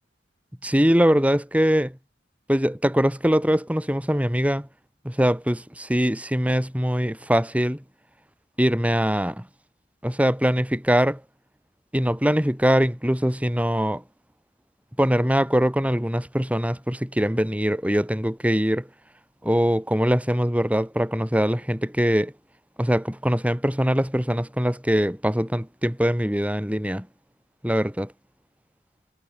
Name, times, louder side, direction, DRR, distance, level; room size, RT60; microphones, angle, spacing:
voice 1, 0.6-2.0 2.5-4.7 5.0-7.8 8.6-9.5 10.0-11.2 11.9-14.0 15.0-18.9 19.4-22.3 22.8-27.1 27.6-28.1, equal, 10° right, 4.2 m, -22 dB
head